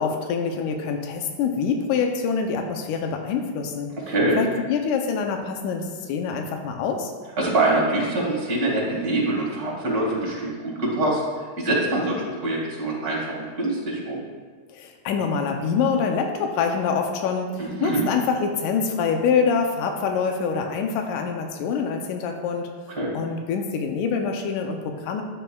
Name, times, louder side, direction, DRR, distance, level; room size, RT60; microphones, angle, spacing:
voice 1, 0.0-3.9 4.3-7.1 14.7-22.7 23.1-25.2, left 6 dB, 90° left, 3 dB, 2.2 m, -25 dB
voice 2, 4.1-4.4 7.4-11.2 11.6-14.2 17.8-18.0 23.0-23.1, right 2 dB, 35° right, -4 dB, 2.1 m, -24 dB
11.0 x 7.0 x 2.3 m, 1.5 s
omnidirectional pair, 3.5 m